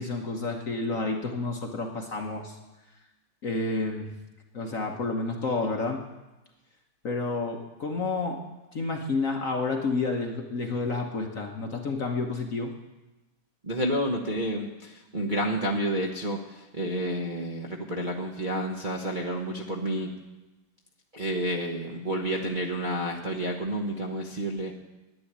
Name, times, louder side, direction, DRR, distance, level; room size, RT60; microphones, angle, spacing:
voice 1, 0.0-2.6 3.4-4.1 4.5-6.0 7.0-8.4 8.7-12.7, left 3 dB, 50° left, 3 dB, 1.1 m, -30 dB
voice 2, 13.6-20.1 21.1-24.8, right 1 dB, 35° right, -2 dB, 0.8 m, -30 dB
11.0 x 8.6 x 9.9 m, 1.1 s
omnidirectional pair, 2.3 m